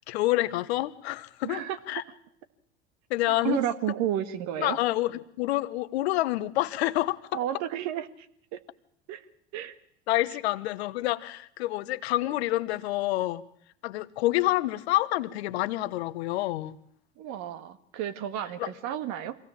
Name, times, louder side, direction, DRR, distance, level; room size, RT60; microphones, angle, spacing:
voice 1, 0.1-2.0 3.1-3.6 4.6-7.2 10.1-13.4 13.8-16.8 18.6-18.7, left 16 dB, 65° left, 14 dB, 1.1 m, -28 dB
voice 2, 1.4-2.0 3.3-4.8 7.3-8.1 8.5-8.6 9.1-9.2 9.5-9.7 17.2-19.4, right 11 dB, 50° right, 11 dB, 1.7 m, -32 dB
24.5 x 17.0 x 7.3 m, 0.70 s
hypercardioid pair, 85°, 34 cm